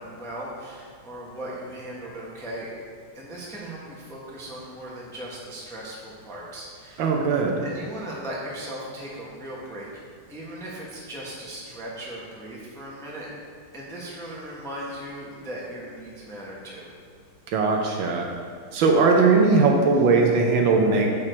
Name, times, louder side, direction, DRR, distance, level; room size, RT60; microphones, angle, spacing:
voice 1, 0.0-2.7 3.1-7.1 7.6-9.9 10.3-13.3 13.7-16.9, right 1 dB, ahead, -5 dB, 0.7 m, -38 dB
voice 2, 7.0-7.6 17.5-18.3 18.7-21.1, right 4 dB, 70° right, 1 dB, 1.4 m, -19 dB
6.2 x 5.9 x 4.4 m, 2.2 s
omnidirectional pair, 2.4 m